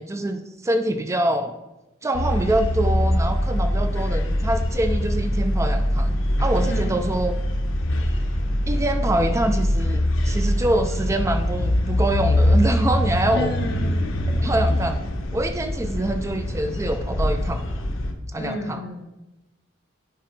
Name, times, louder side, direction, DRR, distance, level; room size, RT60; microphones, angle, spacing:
voice 1, 0.0-1.5 2.0-7.3 8.7-13.5 14.4-15.0 15.3-17.6 18.3-18.8, right 1 dB, 15° right, 7 dB, 0.4 m, -25 dB
sound 1, 2.1-18.1, left 1 dB, 75° left, 0.9 m, -23 dB
voice 2, 6.6-7.0 13.3-13.9 18.4-19.0, left 1 dB, 55° left, 1 dB, 1.4 m, -31 dB
10.5 x 4.9 x 4.5 m, 0.99 s
head